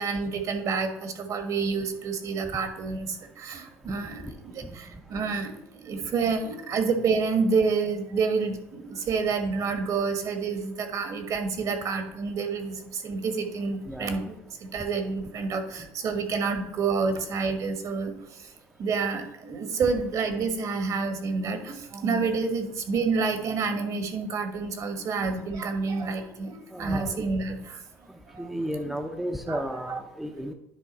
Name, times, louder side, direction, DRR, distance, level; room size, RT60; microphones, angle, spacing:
voice 1, 0.0-5.5 5.8-14.3 14.7-18.1 18.8-27.8 28.3-28.9 29.5-30.0, right 4 dB, 50° right, 7 dB, 1.5 m, -28 dB
voice 2, 13.9-14.2 26.7-27.3 28.4-30.5, equal, 5° right, 4 dB, 0.7 m, -33 dB
10.0 x 3.5 x 5.4 m, 0.83 s
supercardioid pair, 95°, 7 cm